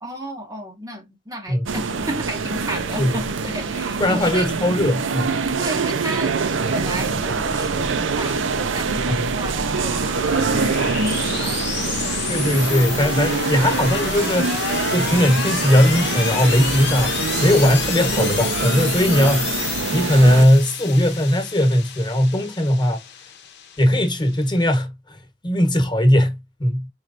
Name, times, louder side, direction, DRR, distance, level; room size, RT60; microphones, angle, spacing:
voice 1, 0.0-4.6 5.5-6.4 6.7-10.0 10.3-12.4, right 1 dB, 20° right, 0.7 m, -33 dB
sound 1, 1.7-20.5, right 4 dB, 75° right, 0.6 m, -25 dB
voice 2, 4.0-5.4 12.3-14.6 14.9-19.5 19.9-23.0 23.8-25.2 25.4-26.9, equal, 25° left, 1.2 m, -18 dB
sound 2, 6.9-24.7, left 7 dB, 60° left, 0.9 m, -30 dB
4.6 x 3.1 x 2.5 m
head